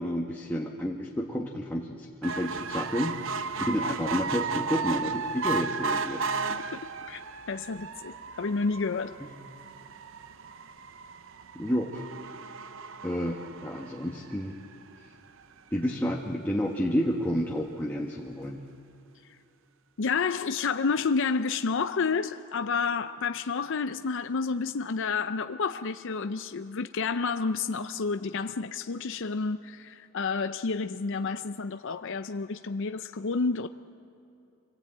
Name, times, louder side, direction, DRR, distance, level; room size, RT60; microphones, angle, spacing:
voice 1, 0.0-6.3 9.2-9.3 11.5-12.0 13.0-14.6 15.7-18.6, equal, 10° left, 1.2 m, -30 dB
sound 1, 2.2-14.8 15.4-15.5 15.8-15.9 16.1-16.2, right 4 dB, 60° right, 0.7 m, -34 dB
voice 2, 6.5-7.2 7.5-9.2 20.0-33.7, left 4 dB, 60° left, 0.5 m, -30 dB
26.0 x 18.5 x 8.8 m
head